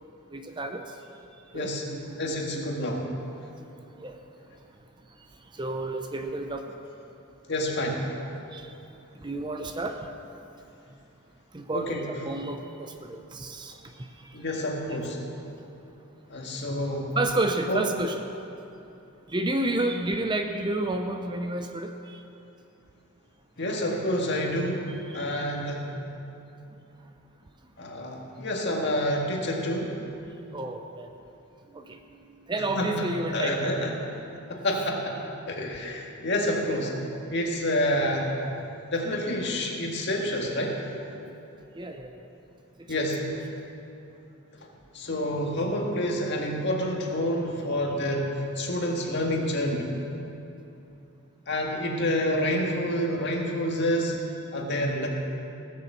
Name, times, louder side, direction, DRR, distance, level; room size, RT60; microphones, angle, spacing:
voice 1, 0.3-0.8 1.5-2.4 2.7-2.8 4.0-4.2 5.5-6.6 8.5-8.7 9.2-10.0 11.5-14.4 14.9-15.0 17.2-18.2 19.3-22.2 25.1-25.5 30.5-31.1 31.7-32.2 32.5-34.1 41.7-42.2 43.0-43.1 43.5-43.6, right 2 dB, 20° right, 5 dB, 0.6 m, -31 dB
voice 2, 2.2-3.0 7.5-8.0 11.7-12.1 14.3-15.2 16.3-17.1 17.7-17.8 23.6-25.9 27.8-30.0 32.8-33.9 34.5-35.2 35.5-36.9 37.3-38.3 38.9-40.8 42.9-43.2 44.9-48.3 48.6-49.9 51.5-54.2 54.5-55.1, left 1 dB, 50° left, 0 dB, 1.8 m, -28 dB
17.5 x 6.9 x 7.4 m, 2.8 s
head